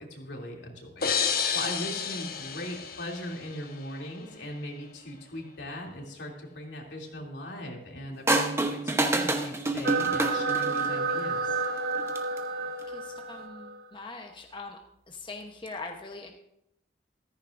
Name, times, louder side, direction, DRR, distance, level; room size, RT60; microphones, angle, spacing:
voice 1, 0.0-11.6, left 1 dB, 85° left, -1 dB, 2.8 m, -39 dB
sound 1, 1.0-3.8, left 6 dB, 55° left, 1.1 m, -30 dB
sound 2, 8.3-11.0 12.0-12.4, right 2 dB, 15° right, 0.9 m, -27 dB
sound 3, 9.8-13.8, right 4 dB, 65° right, 1.0 m, -30 dB
voice 2, 12.9-14.8 15.1-16.3, left 3 dB, 30° left, 2 dB, 0.9 m, -42 dB
14.5 x 14.0 x 2.6 m, 0.77 s
head